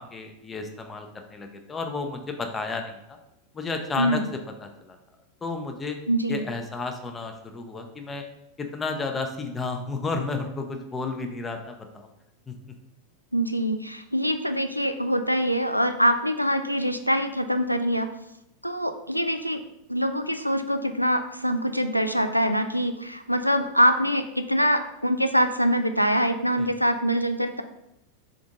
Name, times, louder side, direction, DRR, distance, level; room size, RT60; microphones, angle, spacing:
voice 1, 0.0-2.9 3.5-4.2 4.6-5.0 5.4-6.0 6.3-8.2 8.6-12.1 12.5-12.6 26.5-26.7, left 3 dB, 15° left, 4 dB, 0.6 m, -32 dB
voice 2, 6.1-6.4 13.3-18.1 18.6-19.6 19.9-27.6, equal, 90° left, 8 dB, 0.3 m, -24 dB
3.8 x 3.4 x 3.8 m, 0.83 s
figure-of-eight pair, 90°, 0 cm